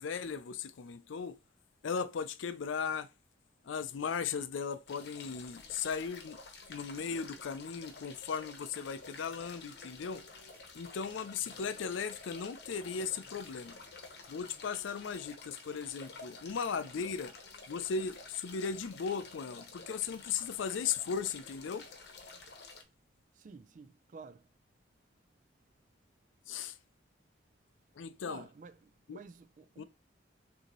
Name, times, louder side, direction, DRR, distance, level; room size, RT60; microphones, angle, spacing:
voice 1, 0.0-1.4 1.8-3.1 3.6-6.4 6.7-10.2 10.7-13.8 14.3-17.4 17.7-21.9 26.5-26.8 28.0-28.5 29.1-29.2 29.8-29.9, left 6 dB, 90° left, 0.4 m, -37 dB
sound 1, 4.9-22.8, left 4 dB, 60° left, 0.8 m, -51 dB
sound 2, 8.9-14.2, right 1 dB, 10° right, 1.8 m, -66 dB
voice 2, 23.4-24.5 28.3-29.8, right 4 dB, 40° right, 0.3 m, -51 dB
6.5 x 2.7 x 3.0 m
head